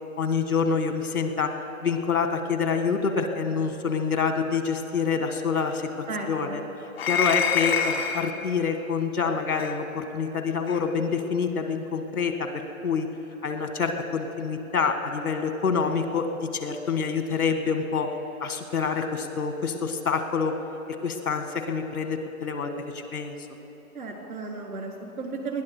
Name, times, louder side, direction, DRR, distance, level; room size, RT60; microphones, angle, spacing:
voice 1, 0.2-1.5 1.8-6.6 7.0-13.1 13.4-16.3 16.5-18.1 18.4-20.6 21.0-23.4, left 5 dB, 80° left, 6 dB, 1.9 m, -27 dB
voice 2, 6.1-6.6 23.9-25.6, right 4 dB, 90° right, 0 dB, 3.8 m, -34 dB
sound 1, 7.0-8.3 9.6-9.7 10.7-10.8, left 7 dB, 45° left, 1.4 m, -26 dB
28.0 x 21.0 x 2.2 m, 2.9 s
hypercardioid pair, 155°, 43 cm